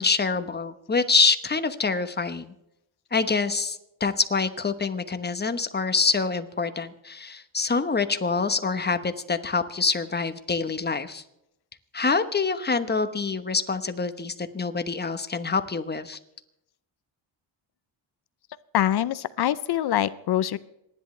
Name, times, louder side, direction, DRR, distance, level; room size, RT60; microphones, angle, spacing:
voice 1, 0.0-2.5 3.1-11.2 11.9-16.2, left 4 dB, 20° left, 10 dB, 1.1 m, -26 dB
voice 2, 18.7-20.6, left 11 dB, 55° left, 16 dB, 0.6 m, -24 dB
27.0 x 11.0 x 3.3 m, 0.83 s
cardioid pair, 95°, 48 cm